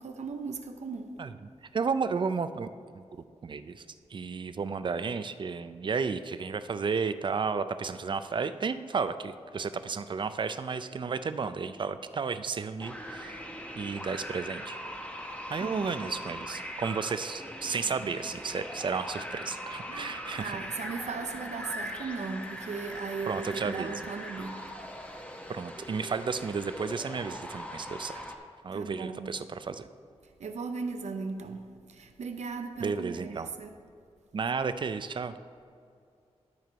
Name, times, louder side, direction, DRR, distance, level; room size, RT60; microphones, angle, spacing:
voice 1, 0.0-1.2 15.6-16.1 19.9-24.7 28.7-29.3 30.4-33.7, right 4 dB, 85° right, 7 dB, 0.7 m, -37 dB
voice 2, 1.7-2.7 2.9-3.0 3.4-3.8 4.1-13.4 13.8-14.8 15.5-20.6 23.3-23.9 25.5-28.2 28.6-29.9 32.8-33.5 34.3-35.3, right 5 dB, 45° right, 12 dB, 0.4 m, -33 dB
sound 1, 12.8-28.3, equal, 10° left, 0.9 m, -41 dB
12.5 x 4.6 x 5.1 m, 2.4 s
wide cardioid pair, 115°, 11 cm